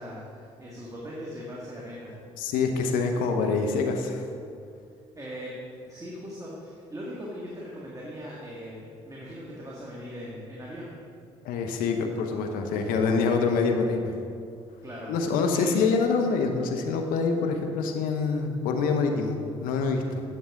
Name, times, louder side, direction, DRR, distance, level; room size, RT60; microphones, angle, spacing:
voice 1, 0.0-2.1 5.1-5.5 5.9-11.0 14.8-15.1 15.5-15.8, equal, 25° right, -5 dB, 2.0 m, -39 dB
voice 2, 2.4-4.3 11.4-14.1 15.1-20.2, left 4 dB, 75° left, 4 dB, 0.8 m, -26 dB
9.9 x 7.1 x 3.8 m, 2.5 s
hypercardioid pair, 50°, 15 cm